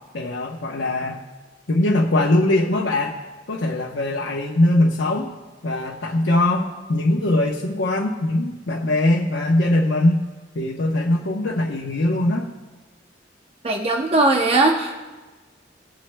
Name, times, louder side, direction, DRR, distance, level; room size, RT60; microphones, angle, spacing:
voice 1, 0.1-1.2 1.7-3.1 3.5-5.3 5.6-10.2 10.5-12.5, left 1 dB, 80° left, -2 dB, 0.9 m, -21 dB
voice 2, 13.6-15.0, right 2 dB, 35° right, 2 dB, 0.7 m, -19 dB
18.5 x 7.6 x 2.2 m, 1.3 s
head